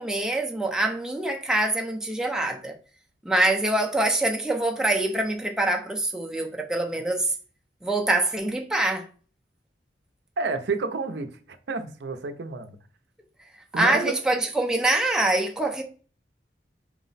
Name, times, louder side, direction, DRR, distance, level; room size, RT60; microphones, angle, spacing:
voice 1, 0.0-2.8 3.2-7.3 7.8-9.1 13.7-15.8, right 2 dB, 5° right, 0.5 m, -24 dB
voice 2, 10.4-11.3 11.7-12.8 13.7-14.1, right 4 dB, 65° right, 0.5 m, -29 dB
4.7 x 2.1 x 3.9 m
head